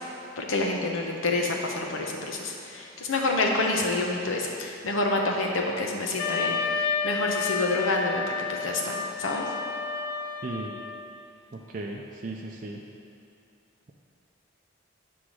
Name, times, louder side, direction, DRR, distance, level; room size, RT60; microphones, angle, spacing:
voice 1, 0.4-8.2 8.5-9.5, left 2 dB, 85° left, 0 dB, 0.9 m, -28 dB
Wind instrument woodwind instrument, 6.2-11.1, left 5 dB, 55° left, 0.5 m, -31 dB
voice 2, 10.4-10.7 11.5-12.8, right 2 dB, 40° right, -1 dB, 0.4 m, -36 dB
7.5 x 3.5 x 6.3 m, 2.7 s
head